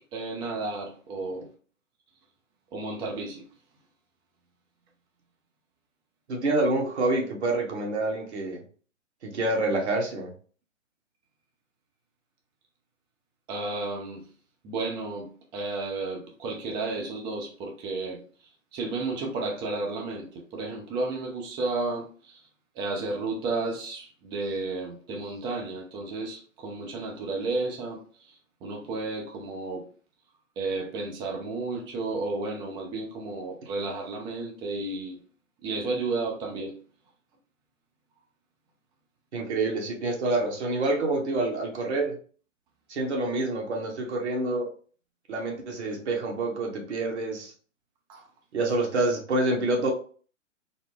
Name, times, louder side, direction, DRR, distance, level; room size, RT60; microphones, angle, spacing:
voice 1, 0.1-1.5 2.7-3.4 13.5-14.2 14.6-18.2 18.7-22.4 22.8-28.0 28.2-28.3 28.6-29.9 30.6-35.2 35.6-36.7 48.1-48.3, right 3 dB, 10° right, 0.5 m, -32 dB
voice 2, 6.3-8.6 9.2-10.3 39.3-42.2 42.9-44.7 45.3-47.5 48.5-49.9, right 2 dB, 60° right, 1.2 m, -27 dB
4.0 x 2.1 x 3.6 m
figure-of-eight pair, 120°, 39 cm